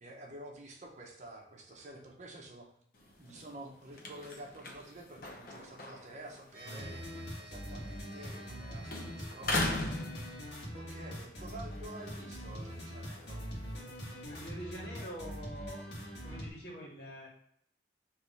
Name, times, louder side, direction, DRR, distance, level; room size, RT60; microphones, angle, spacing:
voice 1, 0.0-2.7 3.2-7.0 7.4-9.9 10.7-13.5, right 1 dB, 40° right, 0 dB, 0.7 m, -49 dB
sound 1, 2.9-8.6 8.9-10.9 11.4-14.4, left 2 dB, 50° left, 0.7 m, -41 dB
sound 2, 6.5-10.6, right 1 dB, 10° right, 1.2 m, -54 dB
sound 3, 6.6-16.5, equal, 85° left, 1.4 m, -43 dB
voice 2, 14.3-15.9 16.2-17.3, right 1 dB, 65° left, -4 dB, 1.7 m, -45 dB
3.5 x 3.1 x 4.0 m, 0.67 s
head